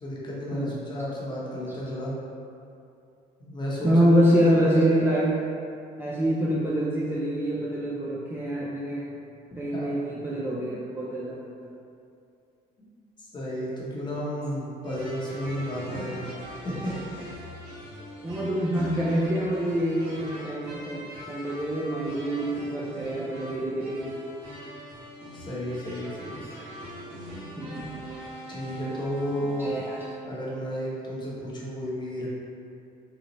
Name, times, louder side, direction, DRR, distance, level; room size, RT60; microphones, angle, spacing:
voice 1, 0.0-2.1 3.4-4.1 9.7-10.0 13.2-17.3 25.3-26.5 28.5-29.7 30.2-32.3, equal, 25° left, -6 dB, 0.8 m, -33 dB
voice 2, 3.8-5.4 6.0-9.1 9.6-11.4 18.2-24.1 27.6-28.0 29.6-29.8, equal, 15° right, -7 dB, 0.3 m, -25 dB
sound 1, 14.8-30.1, equal, 90° right, 1.1 m, -41 dB
3.9 x 2.0 x 2.9 m, 2.5 s
cardioid pair, 110°, 17 cm